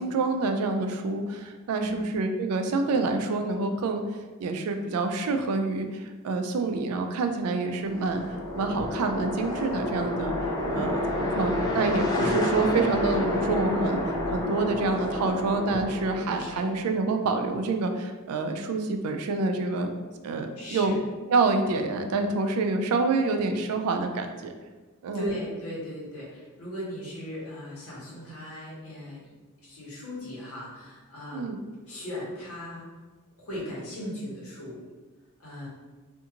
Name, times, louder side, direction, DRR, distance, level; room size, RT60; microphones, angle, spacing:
voice 1, 0.0-4.0 4.4-19.9 20.2-21.0 21.3-24.5 25.0-25.3 31.3-31.6, right 3 dB, 85° right, 6 dB, 0.3 m, -27 dB
voice 2, 1.8-2.1 10.7-11.0 16.4-16.7 20.6-21.0 25.1-29.4 29.6-31.6 31.9-32.9 33.4-34.8 35.4-35.7, equal, 75° left, -7 dB, 1.1 m, -38 dB
sound 1, 7.7-16.8, left 1 dB, 15° left, 0.3 m, -29 dB
2.6 x 2.4 x 2.8 m, 1.3 s
head